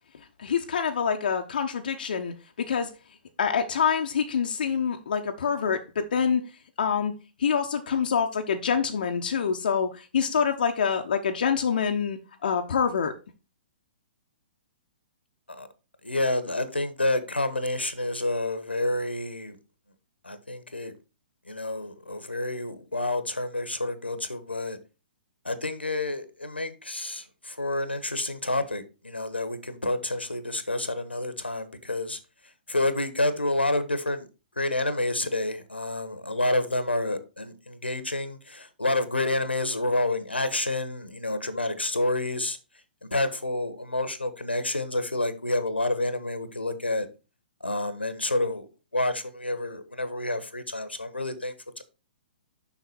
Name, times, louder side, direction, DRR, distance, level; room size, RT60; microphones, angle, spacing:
voice 1, 0.4-2.9 3.4-6.4 6.8-7.1 7.4-13.1, left 6 dB, 60° left, 0.9 m, -26 dB
voice 2, 16.0-19.6 20.2-20.9 21.5-24.8 25.4-32.2 32.7-34.3 34.6-42.6 43.1-47.1 47.6-48.7 48.9-51.8, left 2 dB, 90° left, 1.3 m, -29 dB
7.2 x 5.9 x 4.4 m
figure-of-eight pair, 120°, 6 cm